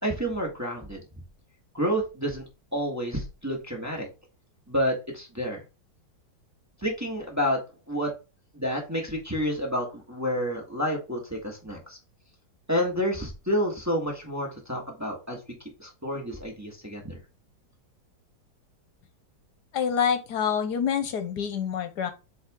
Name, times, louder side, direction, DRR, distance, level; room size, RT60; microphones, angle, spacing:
voice 1, 0.0-1.0 1.7-2.4 2.7-4.1 4.7-5.6 6.8-7.6 7.9-8.1 8.5-12.0 12.7-15.4 15.8-17.2, equal, 10° right, -1 dB, 1.4 m, -29 dB
voice 2, 19.7-22.1, left 7 dB, 70° left, 8 dB, 1.3 m, -26 dB
7.8 x 3.4 x 3.6 m, 0.29 s
omnidirectional pair, 1.9 m